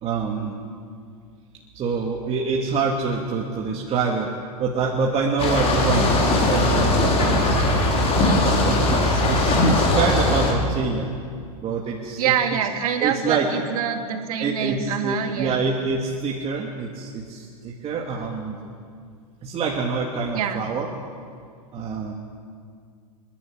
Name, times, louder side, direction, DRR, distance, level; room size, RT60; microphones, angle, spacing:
voice 1, 0.0-0.6 1.7-4.3 4.6-7.6 8.4-11.2 11.6-12.3 13.0-13.5 14.4-18.7 19.4-20.9 21.7-22.1, right 4 dB, 30° right, -1 dB, 2.3 m, -26 dB
sound 1, 5.4-10.5, left 1 dB, 30° left, 4.6 m, -19 dB
voice 2, 12.2-15.6 20.3-20.7, right 8 dB, 65° right, 5 dB, 2.4 m, -25 dB
27.0 x 11.5 x 8.8 m, 2.2 s
hypercardioid pair, 105°, 20 cm